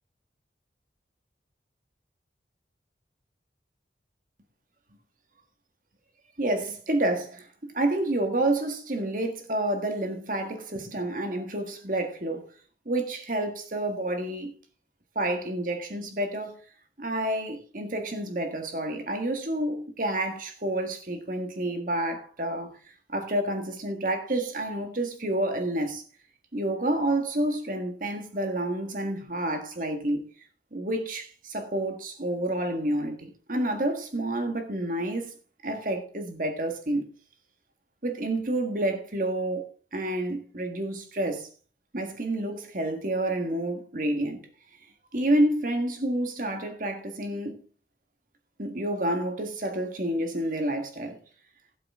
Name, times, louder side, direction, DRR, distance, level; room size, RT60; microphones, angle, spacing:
voice 1, 6.4-12.5 12.9-14.5 15.2-16.6 17.0-26.0 26.5-30.3 30.7-35.3 35.6-37.1 38.0-41.5 41.9-44.4 45.1-47.6 48.6-51.2, right 1 dB, 45° right, 1.7 m, -29 dB
16.5 x 7.8 x 3.7 m
head